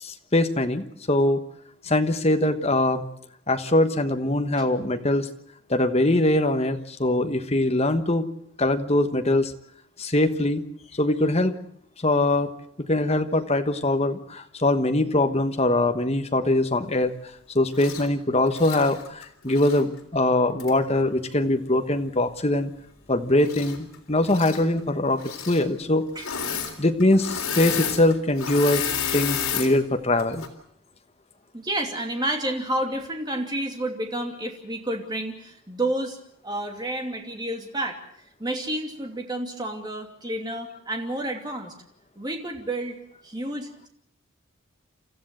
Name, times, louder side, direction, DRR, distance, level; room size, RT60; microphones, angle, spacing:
voice 1, 0.0-1.4 1.8-3.0 3.5-5.3 5.7-8.3 8.6-9.5 10.0-10.7 11.0-11.5 12.0-12.5 12.8-17.1 17.5-22.7 23.1-26.1 26.8-30.4, left 1 dB, 30° left, 7 dB, 1.3 m, -22 dB
Engine / Mechanisms, 17.7-18.1 18.5-19.8 20.6-20.7 23.4-24.0 24.2-24.6 25.2-25.6 26.2-26.7 27.0-29.7 30.2-30.5, left 7 dB, 75° left, 3.7 m, -30 dB
voice 2, 31.5-36.2 36.4-38.0 38.4-41.7 42.2-43.0 43.2-43.9, right 1 dB, 20° right, 2 dB, 2.7 m, -30 dB
28.5 x 14.0 x 7.8 m, 0.72 s
head